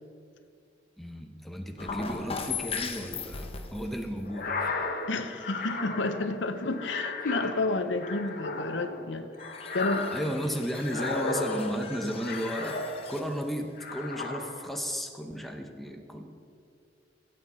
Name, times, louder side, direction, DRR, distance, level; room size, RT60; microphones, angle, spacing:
voice 1, 1.0-4.8 10.1-12.8 13.1-16.3, equal, ahead, 3 dB, 0.8 m, -34 dB
sound 1, 1.8-4.6 9.3-13.4 13.7-13.8, left 5 dB, 30° left, 0.8 m, -39 dB
sound 2, 4.3-13.4 13.8-14.8, left 3 dB, 50° left, 1.1 m, -35 dB
voice 2, 5.1-9.3 9.7-10.1, left 2 dB, 70° left, 8 dB, 0.7 m, -30 dB
16.5 x 8.5 x 4.2 m, 2.3 s
head